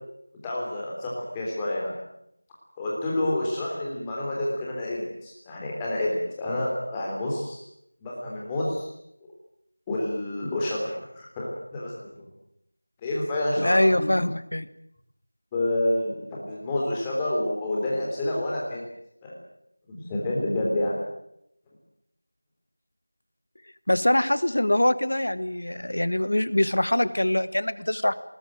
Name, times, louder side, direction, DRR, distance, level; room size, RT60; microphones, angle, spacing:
voice 1, 0.4-1.9 2.8-7.6 8.0-8.9 9.9-11.5 11.7-12.1 13.0-14.1 15.5-18.8 19.2-19.3 19.9-21.0, left 1 dB, 10° left, -4 dB, 3.4 m, -28 dB
voice 2, 13.6-14.7 23.9-28.1, left 1 dB, 70° left, 14 dB, 1.6 m, -23 dB
20.0 x 20.0 x 9.1 m, 0.76 s
figure-of-eight pair, 175°, 0 cm